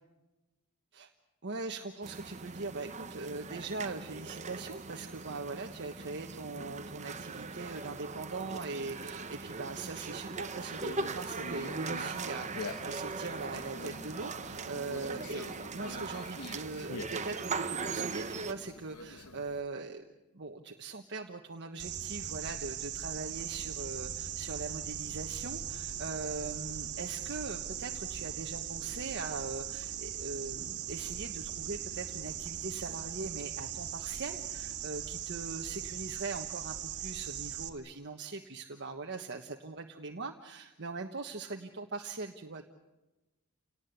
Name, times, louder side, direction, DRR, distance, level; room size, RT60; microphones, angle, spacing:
voice 1, 1.4-20.0 20.3-42.6, right 3 dB, 50° right, 3 dB, 1.4 m, -41 dB
sound 1, 2.0-18.5, right 4 dB, 30° right, 1.0 m, -40 dB
Conversation, 10.8-19.6, left 3 dB, 85° left, 1.6 m, -46 dB
sound 2, 21.8-37.7, right 9 dB, 85° right, 2.0 m, -39 dB
29.5 x 19.0 x 8.3 m, 1.1 s
head